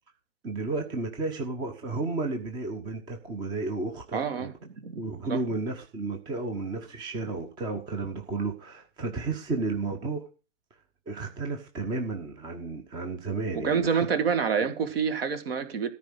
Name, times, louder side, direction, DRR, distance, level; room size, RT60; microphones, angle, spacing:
voice 1, 0.4-4.5 5.0-10.2 11.1-14.1, right 3 dB, 10° right, 0.9 m, -32 dB
voice 2, 4.1-5.0 5.3-5.4 13.5-15.9, right 6 dB, 45° right, 1.9 m, -27 dB
14.0 x 4.8 x 7.9 m
figure-of-eight pair, 125°, 39 cm